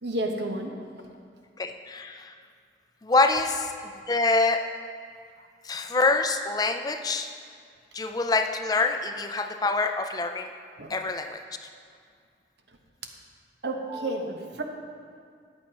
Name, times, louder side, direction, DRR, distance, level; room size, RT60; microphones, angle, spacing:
voice 1, 0.0-0.7 5.4-5.5 10.8-10.9 13.6-14.6, right 1 dB, 75° right, 3 dB, 1.1 m, -31 dB
voice 2, 1.6-2.3 3.0-3.7 4.1-4.6 5.6-7.3 7.9-10.5 10.9-11.4, left 3 dB, 20° left, 6 dB, 0.4 m, -25 dB
13.5 x 9.8 x 3.0 m, 2.2 s
head